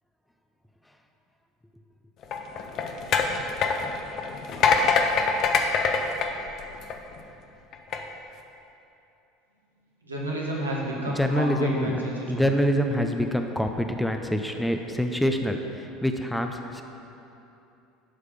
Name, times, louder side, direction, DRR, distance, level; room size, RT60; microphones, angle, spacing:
sound 1, 2.2-7.2 7.7-8.0, left 5 dB, 45° left, 0.7 m, -24 dB
voice 1, 10.1-12.3, right 1 dB, 85° right, -4 dB, 1.4 m, -30 dB
voice 2, 11.2-12.0 12.3-16.8, equal, 5° left, 5 dB, 0.6 m, -26 dB
12.0 x 4.9 x 5.0 m, 2.9 s
figure-of-eight pair, 65°, 0 cm